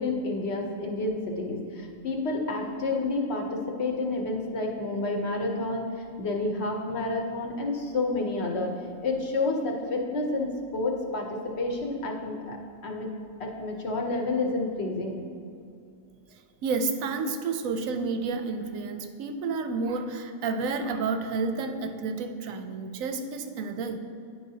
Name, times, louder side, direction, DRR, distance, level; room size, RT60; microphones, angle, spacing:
voice 1, 0.0-8.7 9.0-11.3 11.6-12.6 12.8-13.1 13.4-15.2, left 2 dB, 60° left, 1 dB, 0.9 m, -29 dB
voice 2, 16.6-24.0, right 4 dB, 90° right, 7 dB, 1.0 m, -30 dB
9.6 x 4.7 x 2.7 m, 2.4 s
omnidirectional pair, 1.4 m